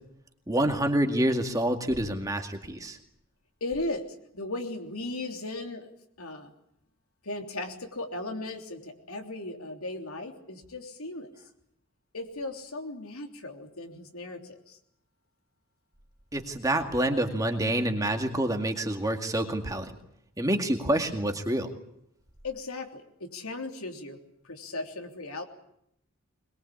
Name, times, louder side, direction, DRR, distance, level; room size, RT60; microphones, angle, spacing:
voice 1, 0.5-3.0 16.3-19.9 20.4-21.7, right 1 dB, 15° right, 5 dB, 2.1 m, -27 dB
voice 2, 3.6-5.9 6.2-6.5 7.2-11.3 12.1-14.8 22.4-24.2 24.4-25.4, left 2 dB, 75° left, 4 dB, 3.3 m, -37 dB
22.5 x 22.0 x 8.5 m, 0.76 s
head